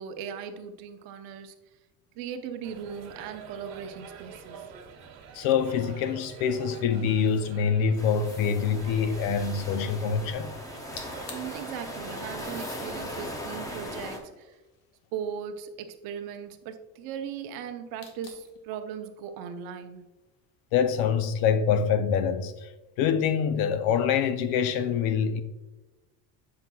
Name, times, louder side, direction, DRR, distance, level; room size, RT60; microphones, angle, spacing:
voice 1, 0.0-1.5 2.1-4.6 11.3-14.6 15.1-20.1, right 7 dB, 65° right, 0.7 m, -38 dB
sound 1, 2.6-14.2, right 5 dB, 45° right, 1.5 m, -46 dB
voice 2, 5.3-10.5 20.7-22.7 23.0-25.4, left 7 dB, 65° left, 0.6 m, -25 dB
sound 2, 8.0-14.2, left 1 dB, 10° left, 0.5 m, -39 dB
sound 3, 8.2-8.7 10.7-10.8 11.0-11.6 12.4-12.9 13.6-15.1 18.0-18.6, left 5 dB, 90° left, 1.5 m, -46 dB
7.6 x 5.7 x 2.3 m
cardioid pair, 160°, 38 cm